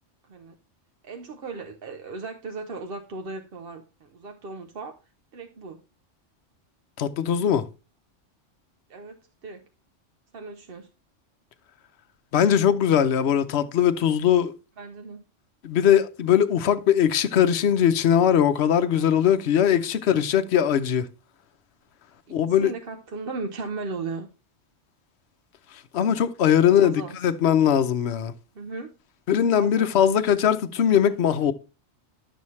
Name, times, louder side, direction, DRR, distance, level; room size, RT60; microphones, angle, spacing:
voice 1, 1.0-5.0 5.3-5.8 8.9-9.6 10.3-10.9 14.8-15.2 19.5-19.9 22.3-24.3 26.8-27.2 28.5-28.9 29.5-29.9, right 3 dB, 55° right, 0.9 m, -37 dB
voice 2, 7.0-7.7 12.3-14.5 15.6-21.0 22.3-22.7 25.9-28.3 29.3-31.5, left 9 dB, 65° left, 0.9 m, -20 dB
11.5 x 7.1 x 3.1 m
omnidirectional pair, 1.3 m